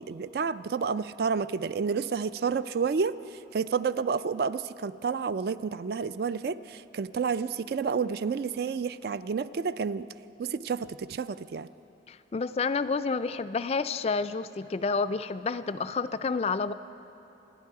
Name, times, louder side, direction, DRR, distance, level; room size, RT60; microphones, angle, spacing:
voice 1, 0.0-3.1 3.5-10.1 10.4-11.7, right 5 dB, 55° right, 14 dB, 0.3 m, -30 dB
voice 2, 12.1-16.7, left 4 dB, 35° left, 12 dB, 0.3 m, -29 dB
28.5 x 10.5 x 4.7 m, 2.9 s
head